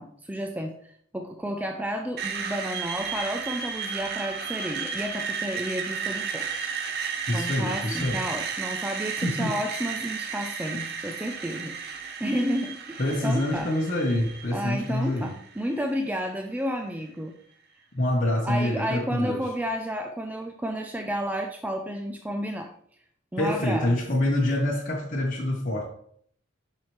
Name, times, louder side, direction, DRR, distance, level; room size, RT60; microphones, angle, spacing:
voice 1, 0.0-6.7 7.0-13.7 14.5-17.3 18.4-22.7 23.3-24.0, equal, 10° right, 3 dB, 0.4 m, -31 dB
Screech, 2.2-16.1, right 6 dB, 50° right, 0.8 m, -34 dB
voice 2, 7.3-8.3 9.2-9.6 13.0-15.3 17.9-19.4 23.4-25.9, left 1 dB, 40° left, -3 dB, 1.0 m, -26 dB
7.4 x 5.6 x 3.2 m, 0.63 s
head